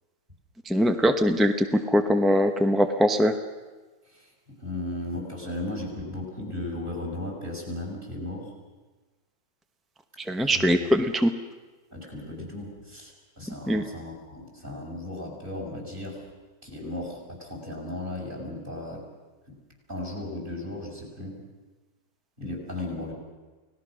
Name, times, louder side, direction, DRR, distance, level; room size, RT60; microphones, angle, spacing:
voice 1, 0.6-3.3 10.3-11.3 13.7-13.8, equal, ahead, 7 dB, 0.4 m, -22 dB
voice 2, 4.0-8.5 10.4-10.9 11.9-16.2 16.6-19.0 19.5-19.6 19.9-21.4 22.4-23.1, left 1 dB, 25° right, -1 dB, 6.3 m, -36 dB
30.0 x 18.5 x 6.3 m, 1.3 s
omnidirectional pair, 2.0 m